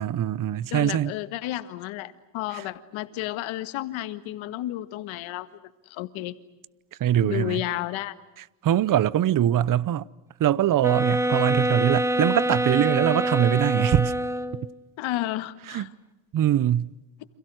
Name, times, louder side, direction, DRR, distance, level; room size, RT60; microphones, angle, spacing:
voice 1, 0.0-1.1 2.5-2.6 7.0-7.6 8.6-10.1 10.4-14.1 15.7-15.9 16.3-16.9, right 11 dB, 45° right, 0.8 m, -22 dB
voice 2, 0.7-5.5 5.9-6.4 7.2-8.2 15.0-15.9, left 15 dB, 80° left, 1.9 m, -32 dB
sound 1, 10.8-14.7, right 1 dB, 5° right, 1.4 m, -25 dB
30.0 x 27.5 x 6.4 m
cardioid pair, 115°, 46 cm